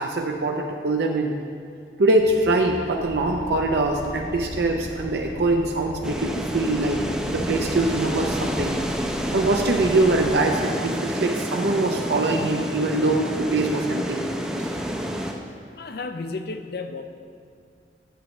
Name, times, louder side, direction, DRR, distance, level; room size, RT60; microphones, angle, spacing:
voice 1, 0.0-1.3 2.0-8.7 9.3-14.3, right 2 dB, 70° right, 2 dB, 0.5 m, -23 dB
sound 1, 2.2-10.5, left 1 dB, 85° left, 1.3 m, -41 dB
sound 2, 3.0-10.4, equal, 20° right, 0.9 m, -39 dB
sound 3, 6.0-15.3, equal, 5° right, 0.5 m, -29 dB
voice 2, 15.8-17.0, left 3 dB, 60° left, 7 dB, 0.5 m, -32 dB
11.0 x 7.6 x 3.1 m, 2.4 s
head